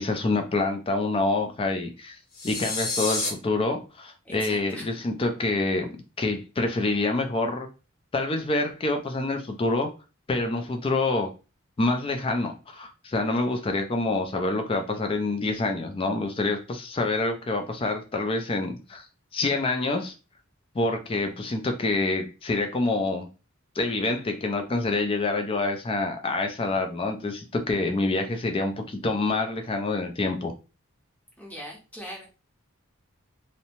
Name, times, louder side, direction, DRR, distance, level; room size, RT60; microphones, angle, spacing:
voice 1, 0.0-2.2 2.4-7.7 8.1-9.9 10.3-11.3 11.8-19.1 19.3-20.1 20.7-23.3 23.8-30.5, left 2 dB, 25° left, 5 dB, 0.3 m, -27 dB
sound 1, 2.3-3.3, left 2 dB, 90° left, 1.0 m, -29 dB
voice 2, 4.2-4.9 31.4-32.3, equal, 5° left, -1 dB, 0.7 m, -40 dB
2.6 x 2.1 x 2.8 m, 0.32 s
head